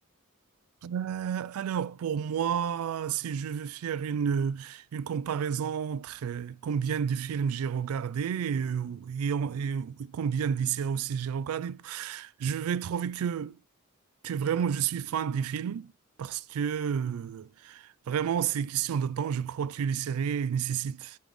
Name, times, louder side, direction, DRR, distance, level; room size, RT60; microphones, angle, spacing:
voice 1, 0.8-13.6 14.2-15.9 16.2-21.2, right 7 dB, 70° right, 0.3 m, -31 dB
8.0 x 3.3 x 5.0 m
head